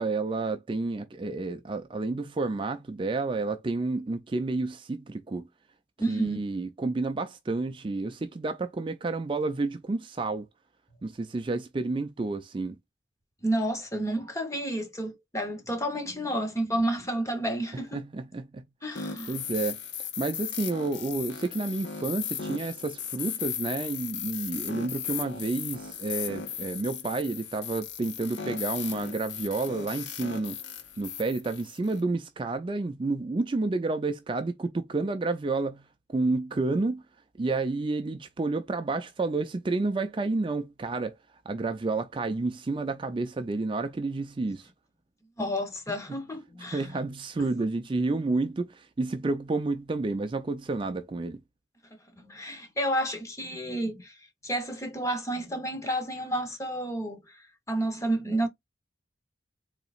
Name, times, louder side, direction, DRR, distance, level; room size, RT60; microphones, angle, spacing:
voice 1, 0.0-5.5 6.1-10.5 11.0-12.8 17.7-18.7 19.3-19.8 20.2-30.6 31.0-37.0 37.4-41.2 41.5-44.7 46.1-46.2 46.7-51.4, right 3 dB, 25° right, 0.4 m, -30 dB
voice 2, 6.0-6.4 13.4-18.0 18.8-19.3 45.4-47.0 47.4-47.5 52.1-54.1 54.4-57.4 57.7-58.5, right 1 dB, 15° left, 1.0 m, -30 dB
sound 1, 19.0-32.0, left 8 dB, 70° left, 0.7 m, -37 dB
3.9 x 2.8 x 2.4 m
head